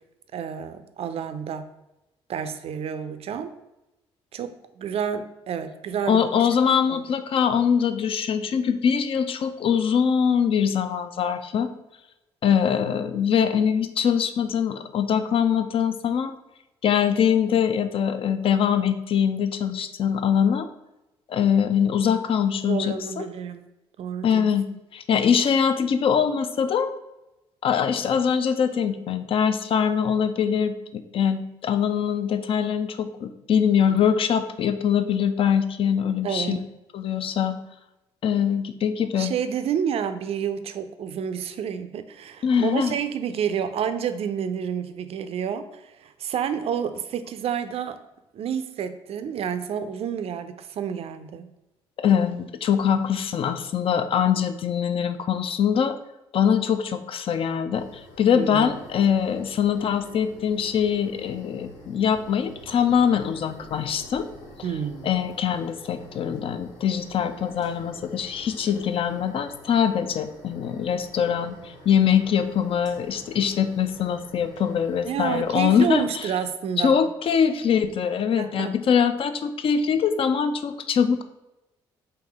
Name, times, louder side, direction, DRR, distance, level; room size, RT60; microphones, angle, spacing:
voice 1, 0.3-1.7 2.3-3.5 4.3-6.5 6.9-7.0 22.7-23.7 24.0-24.5 33.9-34.0 36.2-36.6 39.2-48.0 48.3-51.5 58.4-58.7 64.6-65.1 75.0-77.1 78.4-78.8, right 8 dB, 50° right, 10 dB, 0.4 m, -29 dB
voice 2, 6.1-11.7 12.4-16.3 16.8-20.7 21.3-23.3 24.2-24.7 24.9-26.9 27.6-36.6 36.9-37.6 38.2-39.3 42.4-42.9 52.0-56.0 56.3-57.9 58.2-64.3 65.0-76.3 76.8-81.2, left 7 dB, 45° left, 10 dB, 0.4 m, -23 dB
sound 1, 57.7-76.0, left 2 dB, 60° left, 0.8 m, -47 dB
4.0 x 2.6 x 3.5 m, 0.95 s
hypercardioid pair, 45°, 13 cm